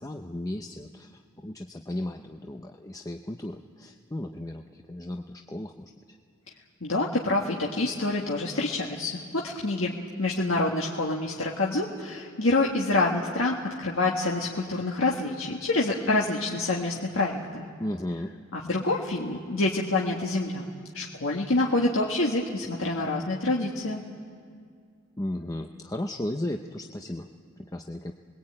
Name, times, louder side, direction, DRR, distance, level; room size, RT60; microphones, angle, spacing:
voice 1, 0.0-6.2 17.8-18.3 25.2-28.1, left 1 dB, 15° left, 4 dB, 0.7 m, -35 dB
voice 2, 6.8-17.7 18.5-20.6 20.9-24.0, left 2 dB, 70° left, -2 dB, 1.7 m, -27 dB
29.0 x 21.0 x 8.8 m, 2.2 s
head